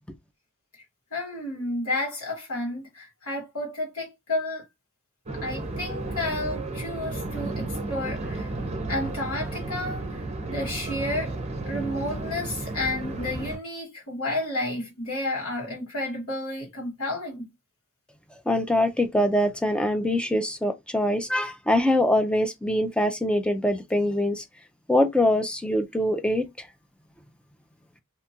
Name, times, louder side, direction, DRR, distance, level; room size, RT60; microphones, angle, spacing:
voice 1, 1.1-4.6 5.4-8.5 8.9-11.4 11.6-17.5, left 1 dB, 70° left, 1.6 m, -31 dB
sound 1, 5.3-13.6, right 2 dB, 30° right, 0.6 m, -33 dB
voice 2, 18.5-24.4 24.9-26.7, left 1 dB, 5° left, 0.3 m, -23 dB
2.8 x 2.3 x 2.7 m
head